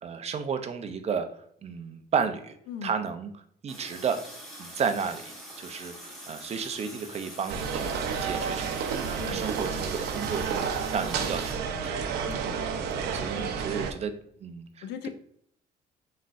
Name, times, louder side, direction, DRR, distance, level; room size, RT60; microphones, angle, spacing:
voice 1, 0.0-1.3 1.6-2.6 2.8-3.3 3.6-4.2 4.6-7.9 8.2-11.9 12.8-14.1 14.4-15.1, right 6 dB, 40° right, 8 dB, 0.6 m, -33 dB
Water tap faucet, 3.7-11.5, equal, ahead, 1.7 m, -44 dB
sound 1, 7.5-13.9, right 6 dB, 75° right, 0.7 m, -31 dB
voice 2, 9.2-9.5 12.1-12.6 13.3-13.5 14.8-15.1, left 8 dB, 90° left, 9 dB, 0.6 m, -39 dB
4.2 x 3.9 x 2.5 m, 0.67 s
cardioid pair, 110°, 17 cm